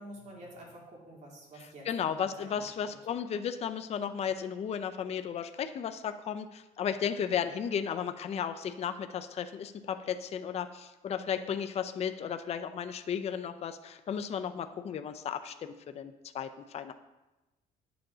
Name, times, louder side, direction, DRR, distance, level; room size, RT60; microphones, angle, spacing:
voice 1, 0.0-2.9, right 1 dB, 45° right, -2 dB, 2.8 m, -49 dB
voice 2, 1.9-16.9, left 8 dB, 40° left, 8 dB, 0.5 m, -34 dB
9.7 x 6.9 x 3.9 m, 1.1 s
cardioid pair, 110°, 17 cm